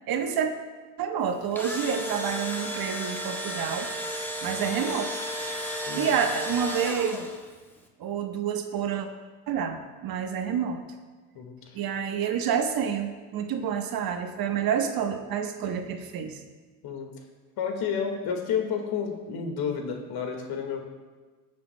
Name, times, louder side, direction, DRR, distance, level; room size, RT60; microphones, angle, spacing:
voice 1, 0.1-0.5 1.0-3.9 4.4-5.1 5.9-7.3 8.0-9.1 9.5-10.8 11.7-16.4, right 7 dB, 45° right, 5 dB, 1.2 m, -28 dB
Engine / Drill, 1.3-7.5, equal, 5° left, 1.4 m, -33 dB
voice 2, 5.9-6.2 11.4-11.5 16.8-17.1 17.6-20.8, left 6 dB, 50° left, 3 dB, 1.8 m, -30 dB
17.5 x 7.5 x 2.2 m, 1.3 s
hypercardioid pair, 85°, 48 cm